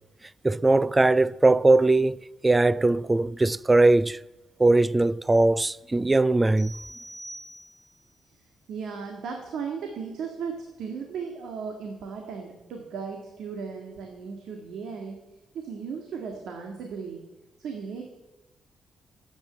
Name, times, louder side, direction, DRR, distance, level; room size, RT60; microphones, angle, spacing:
voice 1, 0.4-2.2 2.4-4.2 4.6-6.7, right 2 dB, 15° right, 0.4 m, -20 dB
sound 1, 6.6-8.1, right 1 dB, 40° right, 4.9 m, -44 dB
voice 2, 8.7-15.2 15.5-17.2 17.6-18.0, right 6 dB, 75° right, 1.9 m, -36 dB
13.5 x 8.8 x 7.6 m
cardioid pair, 110°, 0 cm